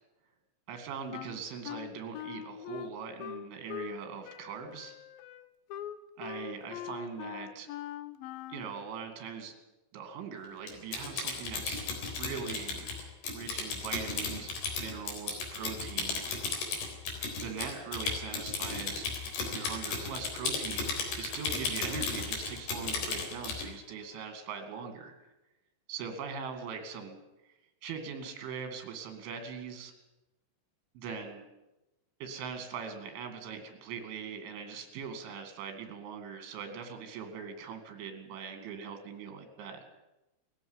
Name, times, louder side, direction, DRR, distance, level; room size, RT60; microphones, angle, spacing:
voice 1, 0.7-5.0 6.2-7.7 8.5-9.5 9.9-11.9 12.2-12.9 13.3-14.5 14.8-16.2 17.4-19.1 19.5-25.1 25.9-27.2 27.8-29.9 31.0-31.4 32.2-39.8, right 6 dB, 80° right, 6 dB, 4.8 m, -41 dB
Wind instrument woodwind instrument, 1.1-4.0 4.2-8.8, left 11 dB, 80° left, 2.1 m, -42 dB
Typing, 10.7-23.7, left 4 dB, 60° left, 5.7 m, -35 dB
20.0 x 14.5 x 9.8 m, 0.97 s
omnidirectional pair, 5.4 m